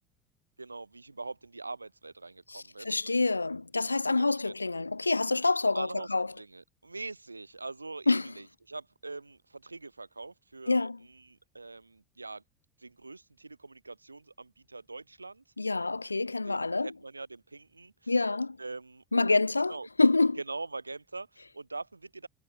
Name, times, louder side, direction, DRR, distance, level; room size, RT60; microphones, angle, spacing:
voice 1, 0.6-3.2 4.1-4.5 5.7-12.4 12.8-15.4 16.4-18.2 18.6-19.4 19.7-19.9 20.4-22.3, right 3 dB, 90° right, 6.6 m, -43 dB
voice 2, 2.5-6.3 8.1-8.3 10.7-11.0 15.6-16.9 18.1-18.6 19.1-20.4, left 3 dB, 90° left, 1.1 m, -27 dB
figure-of-eight pair, 70°, 0 cm